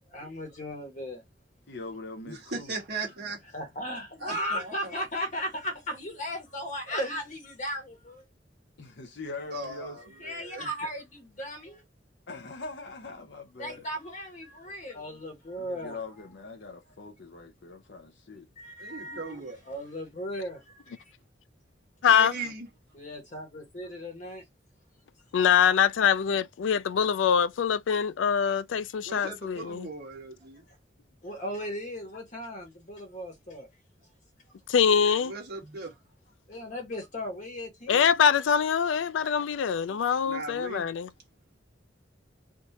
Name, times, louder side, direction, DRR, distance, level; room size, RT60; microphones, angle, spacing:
voice 1, 0.1-1.2 3.5-7.3 7.6-7.8 8.0-8.3 10.2-11.8 13.6-16.0 18.6-21.1 22.9-24.4 31.2-33.7 36.5-38.1, equal, 40° left, 1.3 m, -36 dB
voice 2, 1.7-2.8 8.8-10.0 12.3-13.9 15.6-18.5, left 3 dB, 60° left, 0.7 m, -42 dB
voice 3, 2.2-3.4 4.2-5.0 9.5-10.7 18.8-19.6 22.1-22.7 29.0-30.6 35.2-36.0 39.2-39.3 39.9-40.0 40.3-40.9, right 3 dB, 60° right, 1.4 m, -38 dB
voice 4, 22.0-22.3 25.3-29.9 34.7-35.3 37.9-41.1, left 7 dB, 90° left, 0.4 m, -24 dB
3.5 x 2.6 x 2.8 m
head